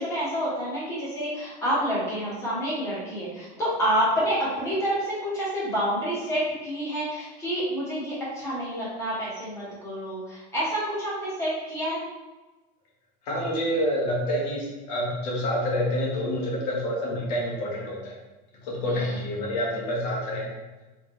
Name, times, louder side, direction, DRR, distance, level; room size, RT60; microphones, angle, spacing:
voice 1, 0.0-12.0 18.8-19.2, equal, 15° left, -8 dB, 1.4 m, -28 dB
voice 2, 13.2-18.1 18.6-20.5, equal, 75° left, -3 dB, 1.5 m, -27 dB
3.9 x 3.6 x 3.1 m, 1.2 s
supercardioid pair, 180°, 21 cm